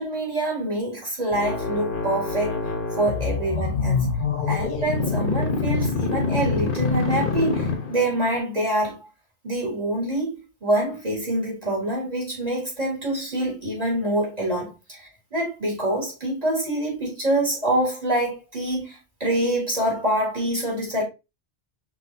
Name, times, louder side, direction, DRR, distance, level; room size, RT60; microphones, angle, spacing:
voice 1, 0.0-2.7 3.0-4.1 4.5-9.1 9.4-21.0, right 1 dB, 35° right, 2.6 m, -26 dB
sound 1, 1.3-8.3, left 4 dB, 50° left, 1.0 m, -25 dB
6.1 x 3.2 x 2.6 m
omnidirectional pair, 1.2 m